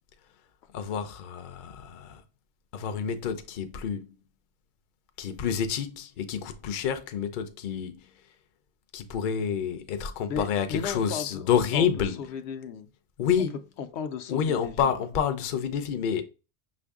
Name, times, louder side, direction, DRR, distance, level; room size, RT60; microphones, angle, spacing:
voice 1, 0.7-2.2 2.7-4.1 5.2-8.1 8.9-12.2 13.2-13.5 14.3-16.2, left 7 dB, 55° left, 0.7 m, -28 dB
voice 2, 10.3-11.4 11.7-11.9 12.2-12.9 13.8-14.9, left 7 dB, 85° left, 0.9 m, -35 dB
5.8 x 2.6 x 3.5 m
omnidirectional pair, 1.1 m